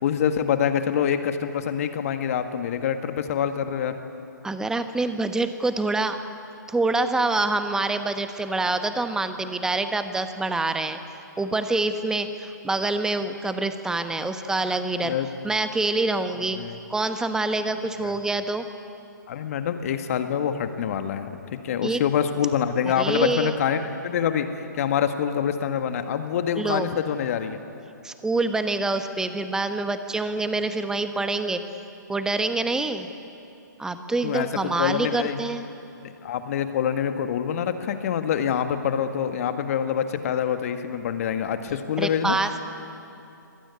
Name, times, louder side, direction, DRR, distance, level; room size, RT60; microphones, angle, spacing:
voice 1, 0.0-4.0 15.0-15.3 16.6-16.8 18.0-18.1 19.3-24.5 24.8-27.6 34.2-35.4 36.0-42.3, left 8 dB, 50° left, 8 dB, 1.8 m, -26 dB
voice 2, 4.4-6.2 6.7-11.0 11.4-15.1 15.4-16.6 16.9-18.7 21.8-22.0 23.0-23.5 26.6-26.9 28.0-31.6 32.1-33.1 33.8-35.7 42.0-42.6, right 2 dB, 5° right, 9 dB, 1.2 m, -26 dB
24.5 x 17.5 x 9.7 m, 2.8 s
figure-of-eight pair, 125°, 10 cm